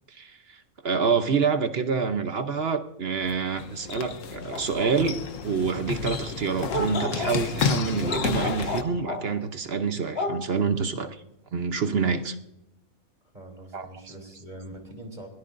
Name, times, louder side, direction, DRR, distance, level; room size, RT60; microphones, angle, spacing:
voice 1, 0.1-11.2 11.5-12.4 13.7-13.9, right 5 dB, 50° right, 8 dB, 1.0 m, -27 dB
sound 1, 3.2-8.8, left 6 dB, 70° left, 1.3 m, -31 dB
sound 2, 4.5-5.0 6.7-9.3 10.1-10.6, left 1 dB, 45° left, 1.8 m, -32 dB
voice 2, 13.3-15.3, right 1 dB, 30° right, 2 dB, 3.3 m, -43 dB
22.5 x 17.0 x 2.6 m, 0.87 s
omnidirectional pair, 1.4 m